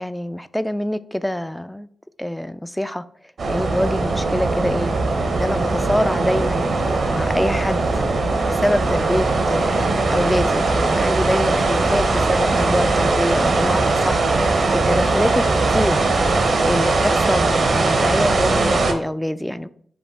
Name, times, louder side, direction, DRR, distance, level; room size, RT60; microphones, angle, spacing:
voice 1, 0.0-1.9 2.2-3.0 3.5-4.9 5.4-6.6 7.1-8.0 8.4-16.0 16.7-19.7, equal, 5° left, 14 dB, 0.3 m, -25 dB
sound 1, 3.4-18.9, right 3 dB, 65° right, 0.7 m, -20 dB
5.2 x 2.5 x 3.8 m, 0.63 s
supercardioid pair, 40°, 0 cm